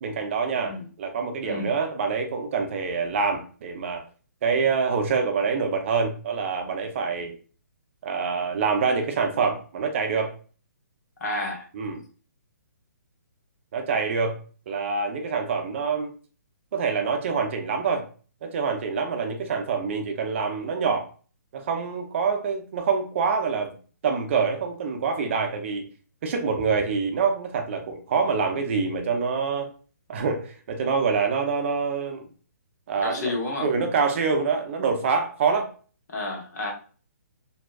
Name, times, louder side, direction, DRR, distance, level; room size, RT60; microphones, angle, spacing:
voice 1, 0.0-4.0 4.4-7.3 8.0-10.3 11.7-12.0 13.7-14.4 14.7-16.1 16.7-18.1 18.4-21.1 21.5-23.7 24.0-25.9 26.2-29.7 30.1-32.3 32.9-33.3 33.6-35.7, right 5 dB, 45° right, 5 dB, 0.5 m, -26 dB
voice 2, 0.5-0.9 1.4-1.8 11.2-11.7 33.0-33.7 36.1-36.7, left 2 dB, 70° left, 0 dB, 0.9 m, -31 dB
2.7 x 2.2 x 2.2 m, 0.38 s
hypercardioid pair, 150°, 9 cm